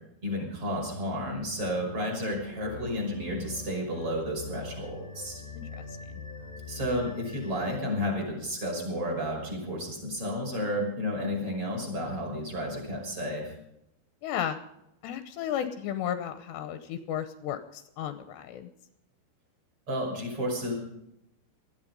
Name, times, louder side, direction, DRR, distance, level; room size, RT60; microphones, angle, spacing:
voice 1, 0.2-5.4 6.6-13.5 19.9-20.7, equal, 30° right, -1 dB, 6.2 m, -32 dB
sound 1, 0.8-7.8, left 4 dB, 20° left, 1.3 m, -44 dB
voice 2, 5.5-6.0 14.2-14.6 15.0-18.7, left 9 dB, 75° left, 10 dB, 2.6 m, -34 dB
19.5 x 13.0 x 5.4 m, 0.82 s
omnidirectional pair, 5.7 m